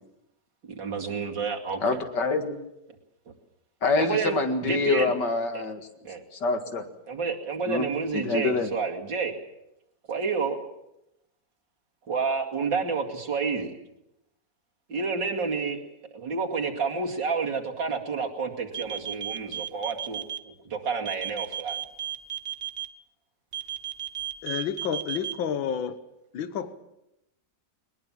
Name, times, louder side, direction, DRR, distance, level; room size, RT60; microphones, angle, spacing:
voice 1, 0.7-2.0 3.3-3.4 4.0-5.1 5.5-5.6 6.0-6.2 7.1-9.4 10.1-10.6 12.1-13.7 14.9-15.8 16.1-21.8, right 5 dB, 70° right, 1 dB, 3.1 m, -29 dB
voice 2, 1.8-2.6 3.8-5.9 6.3-6.8 7.7-7.9 8.1-8.7, left 3 dB, 65° left, 7 dB, 2.5 m, -26 dB
sound 1, 18.7-20.4 21.1-22.9 23.5-25.3, right 10 dB, 40° right, 1.0 m, -33 dB
voice 3, 24.4-26.0 26.3-26.7, left 7 dB, 85° left, 12 dB, 1.9 m, -30 dB
21.0 x 20.5 x 7.5 m, 0.86 s
omnidirectional pair, 2.1 m